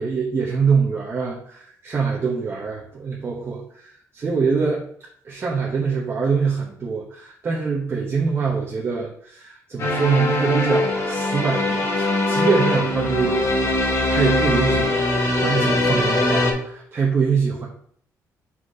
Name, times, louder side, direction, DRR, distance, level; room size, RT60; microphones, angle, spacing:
voice 1, 0.0-4.8 5.2-15.1 15.4-17.7, right 5 dB, 40° right, -4 dB, 1.2 m, -24 dB
sound 1, 9.8-16.5, left 2 dB, 45° left, 1.7 m, -21 dB
4.5 x 4.4 x 4.9 m, 0.63 s
cardioid pair, 85°, 6 cm